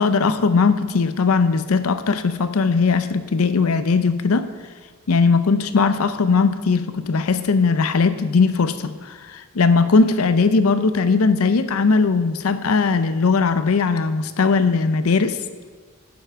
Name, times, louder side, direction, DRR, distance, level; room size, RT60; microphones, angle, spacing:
voice 1, 0.0-4.5 5.1-15.4, left 4 dB, 90° left, 11 dB, 0.6 m, -19 dB
10.5 x 7.1 x 4.5 m, 1.5 s
head